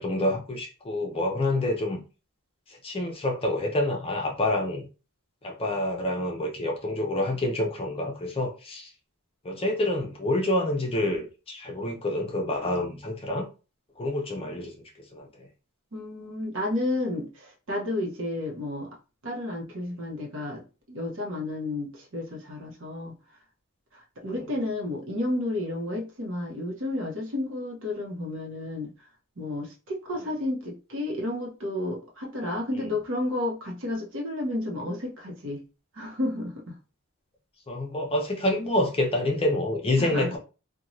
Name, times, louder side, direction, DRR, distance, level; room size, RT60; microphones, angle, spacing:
voice 1, 0.0-2.0 2.7-4.9 5.4-8.9 9.4-13.5 14.0-14.7 15.1-15.5 24.2-24.5 32.8-32.9 37.7-40.4, left 1 dB, 25° left, 0.5 m, -27 dB
voice 2, 15.9-19.0 19.2-20.6 20.9-23.1 24.2-28.9 29.4-35.6 36.0-36.8 40.0-40.4, left 1 dB, 60° right, 0.8 m, -31 dB
2.5 x 2.2 x 3.0 m
head